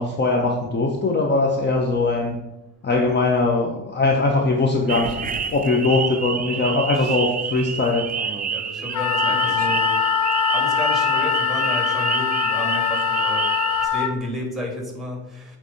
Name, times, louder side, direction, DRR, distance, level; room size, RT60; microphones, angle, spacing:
voice 1, 0.0-2.4 2.8-8.1, left 3 dB, 35° left, 2 dB, 1.0 m, -21 dB
sound 1, 4.9-13.9, right 6 dB, 30° right, 0.5 m, -28 dB
voice 2, 6.4-7.2 8.5-9.9 10.5-13.5 13.9-15.4, left 1 dB, ahead, 0 dB, 2.5 m, -32 dB
Wind instrument woodwind instrument, 8.9-14.1, left 8 dB, 80° left, 0.8 m, -22 dB
8.2 x 3.5 x 5.5 m, 0.95 s
cardioid pair, 95°, 30 cm